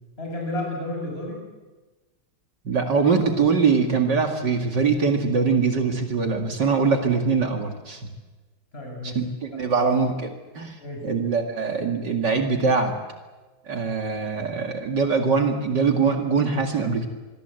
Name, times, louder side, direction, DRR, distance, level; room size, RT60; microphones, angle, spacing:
voice 1, 0.2-1.4 8.7-9.2 9.5-9.8 10.8-11.1, left 1 dB, 25° left, 0 dB, 7.8 m, -32 dB
voice 2, 2.6-8.0 9.0-10.8 11.0-12.9 13.7-17.1, right 5 dB, 55° right, 4 dB, 2.7 m, -23 dB
27.0 x 21.0 x 8.1 m, 1.2 s
omnidirectional pair, 2.3 m